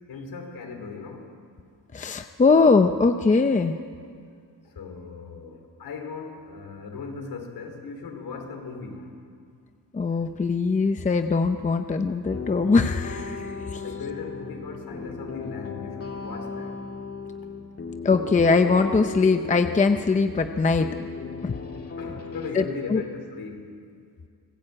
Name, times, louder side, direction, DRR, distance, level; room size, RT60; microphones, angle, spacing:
voice 1, 0.1-1.3 4.6-9.2 13.7-16.8 21.9-23.7, left 4 dB, 60° left, 3 dB, 4.5 m, -37 dB
voice 2, 1.9-3.8 9.9-13.8 18.0-21.0 21.4-21.6 22.5-23.0, left 4 dB, 20° left, 7 dB, 0.6 m, -21 dB
sound 1, 12.3-22.5, left 5 dB, 35° left, 2.1 m, -36 dB
26.0 x 20.0 x 8.7 m, 2.3 s
wide cardioid pair, 175°, 42 cm